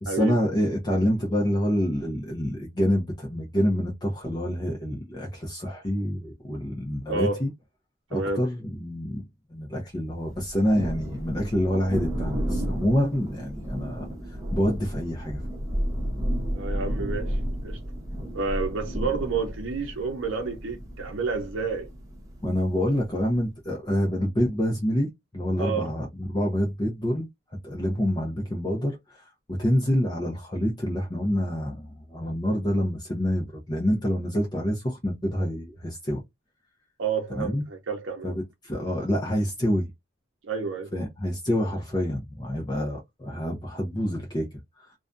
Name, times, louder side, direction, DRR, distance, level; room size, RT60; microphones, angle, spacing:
voice 1, 0.0-7.5 8.1-9.2 9.5-15.4 22.4-27.3 27.6-29.3 29.6-36.2 37.3-37.6 38.2-39.9 40.9-44.9, equal, 20° left, 0.6 m, -27 dB
voice 2, 7.1-7.4 8.1-8.4 16.5-17.8 18.3-21.9 25.6-25.9 37.0-38.3 40.4-40.9, right 4 dB, 75° right, 0.6 m, -30 dB
Thunder, 10.3-23.5, equal, 15° right, 0.9 m, -32 dB
2.5 x 2.2 x 2.4 m
head